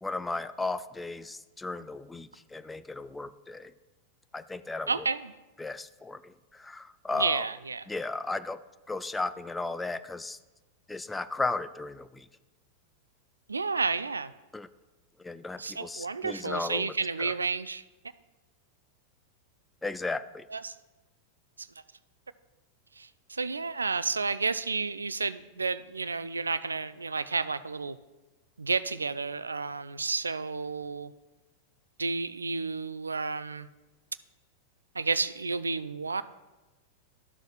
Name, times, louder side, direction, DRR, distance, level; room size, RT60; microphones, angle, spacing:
voice 1, 0.0-3.7 4.3-5.1 5.6-7.4 7.9-8.6 8.9-10.4 10.9-12.3 14.5-14.7 15.2-16.9 17.2-17.3 19.8-20.4, left 3 dB, 10° left, 12 dB, 0.3 m, -35 dB
voice 2, 4.9-5.3 7.1-7.8 13.5-14.3 15.6-17.8 20.5-20.7 21.6-21.7 23.0-28.0 28.6-31.1 32.0-33.7 35.0-36.2, right 4 dB, 75° right, 15 dB, 0.3 m, -31 dB
13.0 x 6.4 x 2.5 m, 1.1 s
figure-of-eight pair, 90°, 0 cm